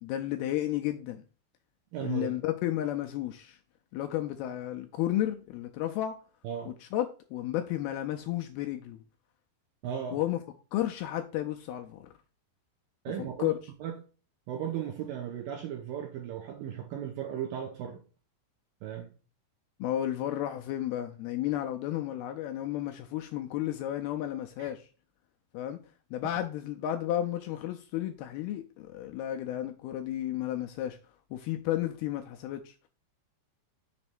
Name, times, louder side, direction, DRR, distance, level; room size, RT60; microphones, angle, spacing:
voice 1, 0.0-1.2 2.0-3.6 3.9-6.2 6.7-9.0 10.1-10.4 10.7-12.1 13.4-13.5 19.8-24.9 25.5-25.8 26.1-31.0 31.3-32.8, left 13 dB, 80° left, 2.3 m, -32 dB
voice 2, 1.9-2.3 6.4-6.7 9.8-10.2 13.0-13.5 13.8-14.0 14.5-18.0 18.8-19.1 24.6-24.7, right 9 dB, 75° right, 2.1 m, -36 dB
7.0 x 3.2 x 6.0 m
omnidirectional pair, 4.9 m